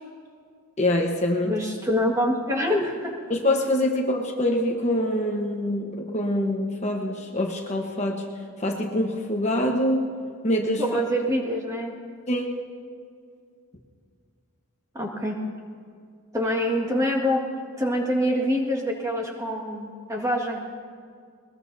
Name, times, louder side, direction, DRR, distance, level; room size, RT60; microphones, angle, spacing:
voice 1, 0.8-1.5 3.3-8.3 8.6-10.1 10.4-11.0 12.3-12.6, left 1 dB, 30° left, 1 dB, 1.1 m, -25 dB
voice 2, 1.4-3.1 10.8-11.9 14.9-15.4 16.3-17.4 17.8-20.7, equal, 15° right, 0 dB, 1.8 m, -25 dB
21.5 x 20.5 x 2.7 m, 2.2 s
head